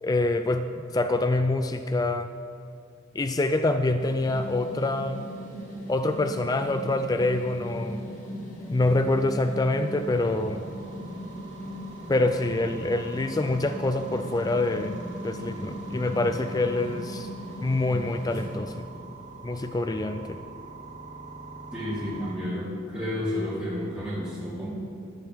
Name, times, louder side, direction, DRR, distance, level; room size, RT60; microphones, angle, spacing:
voice 1, 0.0-2.3 3.1-5.3 5.9-8.0 8.7-10.6 12.1-15.0 15.2-17.3 17.6-18.9 19.4-20.4, left 2 dB, 20° left, 8 dB, 0.3 m, -26 dB
sound 1, 4.0-19.4, left 1 dB, 35° left, 1.9 m, -39 dB
sound 2, 9.8-22.3, right 3 dB, 35° right, 2.0 m, -45 dB
voice 2, 21.7-24.7, left 1 dB, 5° right, -11 dB, 3.5 m, -31 dB
13.5 x 13.0 x 3.5 m, 2.4 s
head